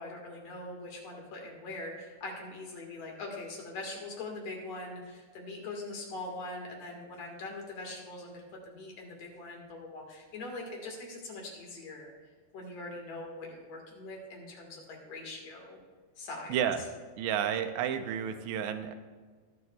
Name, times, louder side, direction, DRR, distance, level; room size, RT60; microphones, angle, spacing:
voice 1, 0.0-12.1 12.5-15.8 16.2-16.6, left 2 dB, 50° left, 0 dB, 2.4 m, -42 dB
voice 2, 16.5-16.8 17.2-19.0, right 9 dB, 85° right, 8 dB, 2.9 m, -31 dB
23.5 x 8.3 x 2.4 m, 1.5 s
omnidirectional pair, 4.8 m